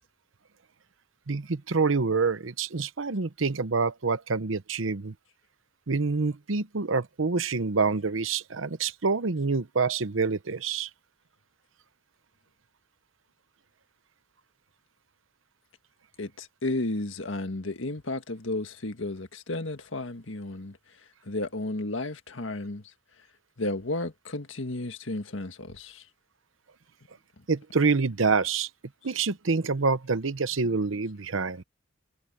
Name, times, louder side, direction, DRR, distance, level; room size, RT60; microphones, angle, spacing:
voice 1, 1.3-5.1 5.9-10.9 27.5-28.7 29.0-31.6, right 4 dB, 85° right, 0.9 m, -27 dB
voice 2, 16.2-20.8 21.2-22.8 23.6-26.0, left 2 dB, 75° left, 1.8 m, -33 dB
head